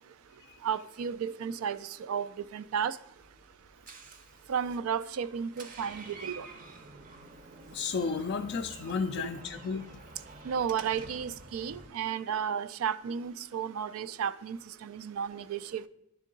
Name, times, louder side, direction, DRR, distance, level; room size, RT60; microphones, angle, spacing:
voice 1, 0.6-3.0 4.5-6.5 10.4-15.9, right 7 dB, 80° right, 0.3 m, -33 dB
Door, 3.2-11.9, right 3 dB, 40° right, 0.6 m, -49 dB
voice 2, 7.7-9.9, left 5 dB, 55° left, 0.3 m, -33 dB
10.5 x 3.7 x 3.8 m
head